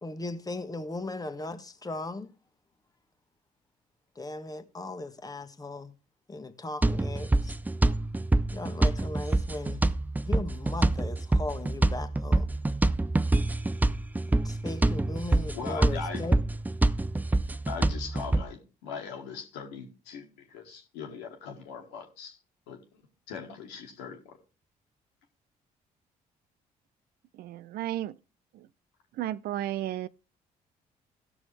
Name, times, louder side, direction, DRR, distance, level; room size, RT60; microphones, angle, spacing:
voice 1, 0.0-2.3 4.1-5.9 6.3-7.5 8.5-9.8 10.2-12.5 14.3-16.4, left 2 dB, 20° left, 1.3 m, -37 dB
sound 1, 6.8-18.4, right 2 dB, 10° right, 0.4 m, -26 dB
voice 2, 15.5-16.3 17.7-22.4 22.7-23.0 23.3-24.4, left 6 dB, 80° left, 1.7 m, -40 dB
voice 3, 27.3-28.2 28.5-28.7 29.1-30.1, right 13 dB, 65° right, 0.4 m, -33 dB
17.0 x 6.1 x 3.3 m
hypercardioid pair, 50°, 17 cm